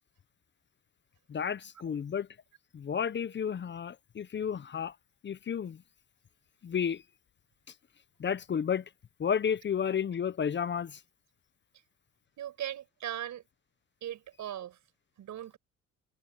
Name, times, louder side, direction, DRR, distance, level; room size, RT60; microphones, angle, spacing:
voice 1, 1.3-2.3 2.7-4.9 5.2-5.8 6.6-7.0 8.2-8.8 9.2-11.0, left 7 dB, 40° left, 0.7 m, -32 dB
voice 2, 12.4-13.4 14.0-14.8 15.2-15.6, right 11 dB, 70° right, 6.2 m, -39 dB
cardioid pair, 90°, 30 cm